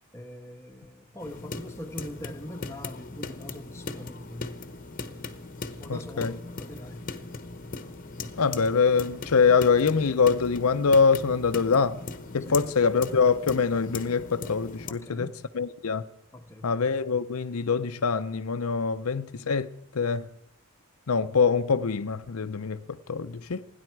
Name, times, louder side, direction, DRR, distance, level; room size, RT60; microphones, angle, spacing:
voice 1, 0.1-4.7 5.8-7.2 7.6-7.7 12.5-12.6 14.9-15.4 16.3-16.9 22.8-23.6, left 1 dB, 10° left, 1.1 m, -43 dB
sound 1, 1.2-14.9, left 3 dB, 40° left, 1.0 m, -39 dB
voice 2, 5.9-6.3 8.4-12.0 12.3-15.3 15.6-16.0 16.6-19.7 19.9-20.3 21.1-22.8 23.1-23.6, left 5 dB, 75° left, 0.6 m, -24 dB
30.0 x 10.0 x 4.7 m
head